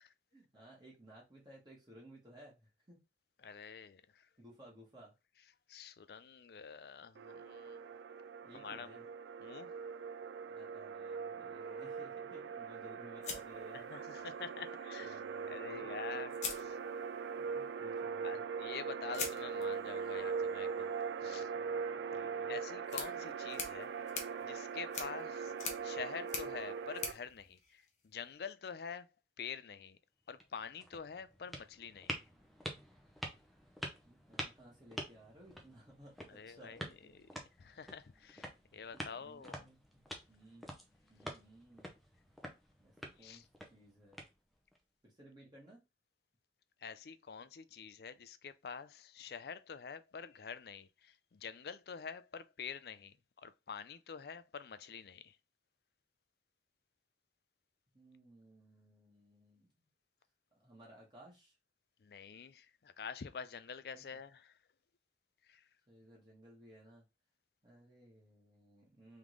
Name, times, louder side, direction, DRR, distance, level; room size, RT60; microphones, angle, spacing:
voice 1, 0.3-2.6 2.9-3.0 4.4-5.1 8.4-9.0 10.5-14.5 15.0-15.8 16.1-16.2 17.4-18.4 21.2-21.7 22.1-22.6 34.0-37.4 38.9-40.0 40.3-40.7 41.1-41.9 42.8-42.9 43.2-43.4 43.7-44.2 45.0-45.8 57.9-59.7 60.5-61.5 63.9-64.0 65.9-67.0 67.6-69.2, right 1 dB, 25° right, 1.7 m, -59 dB
voice 2, 3.4-4.3 5.7-7.8 8.5-9.1 9.4-9.7 13.7-15.2 15.5-16.8 18.2-20.9 21.2-21.5 22.5-23.9 24.4-25.5 25.8-29.1 29.4-30.0 30.3-32.2 36.3-37.3 37.6-39.7 41.2-41.4 43.2-43.5 46.8-55.4 62.0-64.6 65.4-65.7, left 6 dB, 60° left, 0.4 m, -47 dB
sound 1, 7.1-27.1, right 6 dB, 85° right, 0.4 m, -41 dB
sound 2, 13.2-14.4 15.7-15.8 16.3-17.3 19.1-28.3, left 5 dB, 40° left, 0.9 m, -46 dB
sound 3, 30.2-44.8, equal, ahead, 0.7 m, -48 dB
3.7 x 3.5 x 3.1 m
head